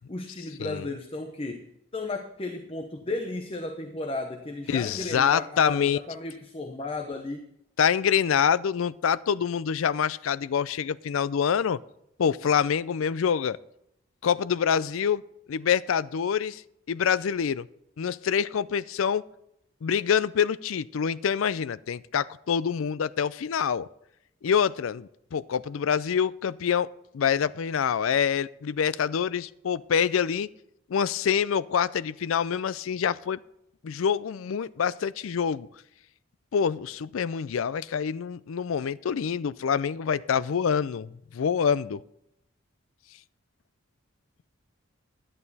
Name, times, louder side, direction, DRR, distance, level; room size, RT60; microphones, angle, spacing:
voice 1, 0.1-7.4, left 2 dB, 25° left, 5 dB, 0.8 m, -34 dB
voice 2, 4.7-6.0 7.8-11.8 12.2-13.6 14.2-16.6 16.9-17.7 18.0-19.3 19.8-23.9 24.4-26.9 27.1-30.5 30.9-33.4 33.8-35.7 36.5-42.0, left 7 dB, 75° left, 18 dB, 0.4 m, -26 dB
11.0 x 11.0 x 4.1 m, 0.79 s
head